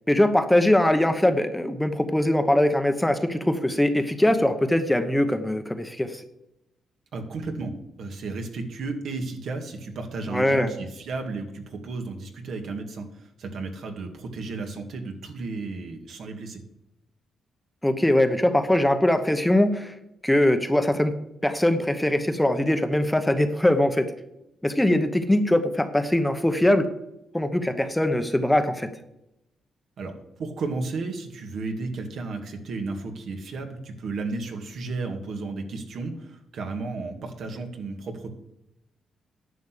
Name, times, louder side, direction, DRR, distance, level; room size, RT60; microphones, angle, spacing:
voice 1, 0.1-6.2 10.3-10.7 17.8-19.9 20.2-21.1 21.4-24.1 24.6-26.9 27.3-28.9, left 1 dB, 5° left, 8 dB, 1.0 m, -22 dB
voice 2, 7.1-7.7 8.0-16.6 30.0-38.3, right 3 dB, 70° right, 5 dB, 2.1 m, -33 dB
11.0 x 6.2 x 8.3 m, 0.85 s
cardioid pair, 115°, 0 cm